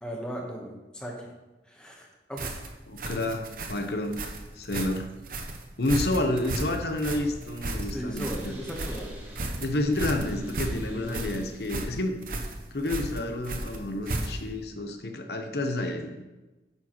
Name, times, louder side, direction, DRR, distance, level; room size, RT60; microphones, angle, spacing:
voice 1, 0.0-1.1 1.7-2.6 7.9-9.1 10.9-11.4, equal, 5° left, -1 dB, 1.2 m, -37 dB
sound 1, 2.4-14.6, right 2 dB, 50° right, 0.8 m, -34 dB
voice 2, 2.9-4.2 4.5-5.1 5.8-8.5 9.6-12.2 12.7-16.2, left 1 dB, 65° left, 6 dB, 0.8 m, -30 dB
sound 2, 6.9-12.0, equal, 10° right, 1.9 m, -45 dB
9.0 x 6.2 x 3.1 m, 1.1 s
head